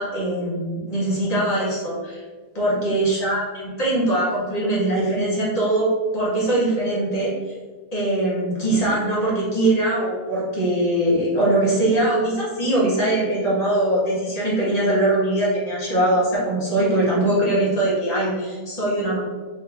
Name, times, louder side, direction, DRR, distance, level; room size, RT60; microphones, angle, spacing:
voice 1, 0.0-2.2 2.5-7.5 7.9-19.2, right 1 dB, 25° left, -8 dB, 1.6 m, -22 dB
4.2 x 3.1 x 3.5 m, 1.5 s
omnidirectional pair, 1.6 m